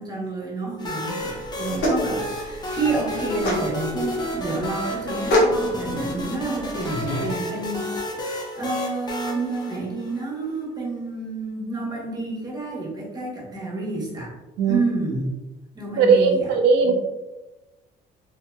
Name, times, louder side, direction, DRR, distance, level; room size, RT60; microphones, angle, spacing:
voice 1, 0.0-7.9 8.6-14.3 14.6-15.3 15.7-16.5 16.8-16.9, right 3 dB, 25° right, -4 dB, 0.9 m, -29 dB
sound 1, 0.8-10.4, equal, 25° left, 0.6 m, -31 dB
sound 2, 1.2-7.3, left 1 dB, 90° left, 0.9 m, -27 dB
voice 2, 16.0-16.9, right 5 dB, 85° right, 4 dB, 0.5 m, -18 dB
2.8 x 2.7 x 2.2 m, 1.1 s
cardioid pair, 110°, 17 cm